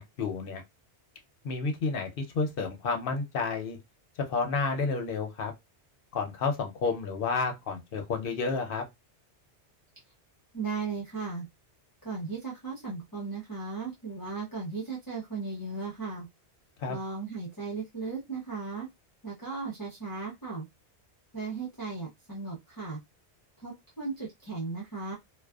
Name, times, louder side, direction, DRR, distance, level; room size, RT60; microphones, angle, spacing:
voice 1, 0.2-0.6 1.4-3.8 4.3-5.5 6.1-8.8 16.8-16.9, left 4 dB, 60° left, 0.8 m, -30 dB
voice 2, 10.5-11.5 12.0-16.3 16.9-18.9 19.2-20.7 21.3-23.0 23.6-25.1, right 4 dB, 20° left, 0.6 m, -36 dB
2.4 x 2.4 x 2.3 m
omnidirectional pair, 1.2 m